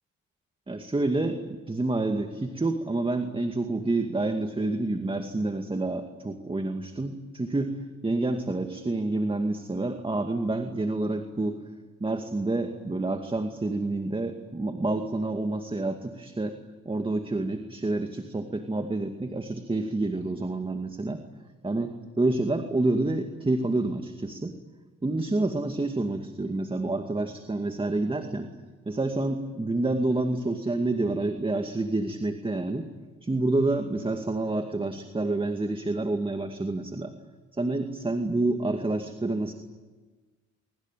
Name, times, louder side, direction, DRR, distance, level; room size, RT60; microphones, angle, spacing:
voice 1, 0.7-11.6 12.0-16.6 16.9-21.2 21.6-24.5 25.0-28.5 28.9-32.9 33.2-37.1 37.6-39.5, right 2 dB, 15° right, 6 dB, 2.2 m, -28 dB
24.5 x 24.0 x 9.2 m, 1.3 s
cardioid pair, 90°, 30 cm